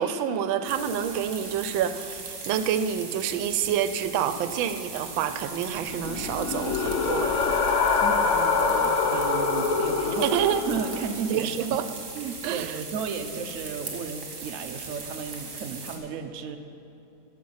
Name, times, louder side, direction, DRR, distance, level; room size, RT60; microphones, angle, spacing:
voice 1, 0.0-7.6 10.2-10.6 11.3-11.9 12.4-12.8, right 9 dB, 85° right, 11 dB, 1.3 m, -28 dB
sound 1, 0.6-16.0, right 4 dB, 45° right, 1.5 m, -39 dB
sound 2, 5.9-11.0, left 4 dB, 70° left, 0.7 m, -25 dB
voice 2, 8.0-11.8 12.1-16.6, right 6 dB, 70° right, 7 dB, 0.7 m, -34 dB
14.0 x 6.0 x 5.6 m, 3.0 s
omnidirectional pair, 2.1 m